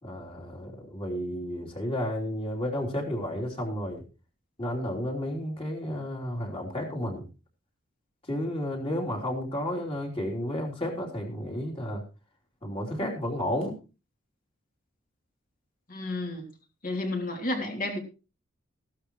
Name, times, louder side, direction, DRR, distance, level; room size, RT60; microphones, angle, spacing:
voice 1, 0.0-4.0 4.6-7.3 8.3-12.0 12.6-13.7, left 1 dB, 30° left, 0 dB, 3.3 m, -32 dB
voice 2, 15.9-16.5 16.8-18.0, left 2 dB, 45° left, 3 dB, 3.0 m, -31 dB
15.5 x 12.0 x 3.1 m, 0.31 s
head